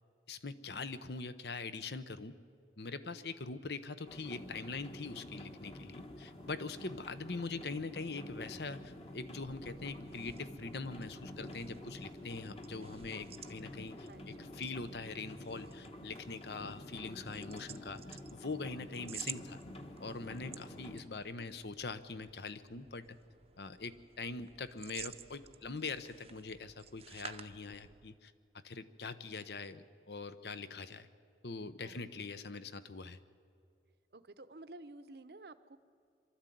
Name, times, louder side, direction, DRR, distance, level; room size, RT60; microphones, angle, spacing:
voice 1, 0.3-2.3 2.8-19.6 20.0-23.1 23.6-28.3 28.6-31.1 31.4-33.2, left 3 dB, 70° left, 13 dB, 0.9 m, -43 dB
sound 1, 4.1-21.0, left 1 dB, 35° left, 1.3 m, -49 dB
sound 2, 9.3-28.2, right 9 dB, 35° right, 0.7 m, -54 dB
voice 2, 14.1-14.5 21.4-21.7 31.8-32.4 34.1-35.8, right 2 dB, 65° right, 12 dB, 0.9 m, -53 dB
23.5 x 13.0 x 9.3 m, 2.4 s
head